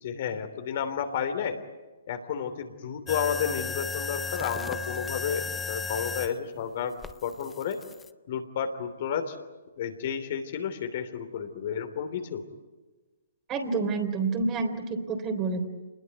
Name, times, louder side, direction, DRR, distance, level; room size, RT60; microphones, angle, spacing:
voice 1, 0.0-1.6 2.1-7.0 7.2-7.8 8.3-9.3 9.8-12.4, left 7 dB, 50° left, 7 dB, 3.2 m, -31 dB
sound 1, 3.1-6.3 7.0-8.1, left 4 dB, 10° left, 0.8 m, -35 dB
voice 2, 13.5-15.6, right 4 dB, 25° right, 6 dB, 3.6 m, -28 dB
28.0 x 20.5 x 9.5 m, 1.2 s
figure-of-eight pair, 130°, 0 cm